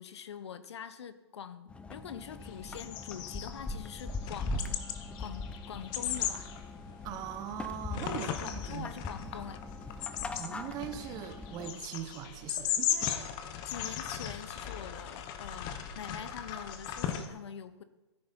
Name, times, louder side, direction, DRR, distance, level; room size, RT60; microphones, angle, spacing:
voice 1, 0.0-4.8 5.2-6.5 8.1-9.6 12.9-13.3 13.6-17.8, left 8 dB, 70° left, 13 dB, 0.9 m, -44 dB
sound 1, 1.7-11.7, left 2 dB, 5° left, 0.5 m, -41 dB
sound 2, 2.4-17.3, left 9 dB, 30° left, 1.0 m, -38 dB
voice 2, 7.0-8.9 10.3-13.1, right 9 dB, 25° right, 9 dB, 1.0 m, -41 dB
13.0 x 10.5 x 4.3 m, 1.1 s
hypercardioid pair, 140°, 15 cm